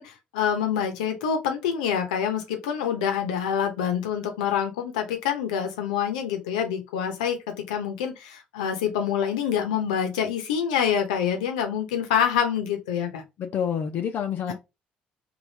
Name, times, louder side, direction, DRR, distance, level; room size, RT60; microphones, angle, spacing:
voice 1, 0.0-13.2 14.5-14.6, left 8 dB, 90° left, 0.8 m, -26 dB
voice 2, 13.4-14.5, left 8 dB, 60° left, 0.6 m, -28 dB
3.3 x 2.6 x 4.0 m
hypercardioid pair, 60°, 4 cm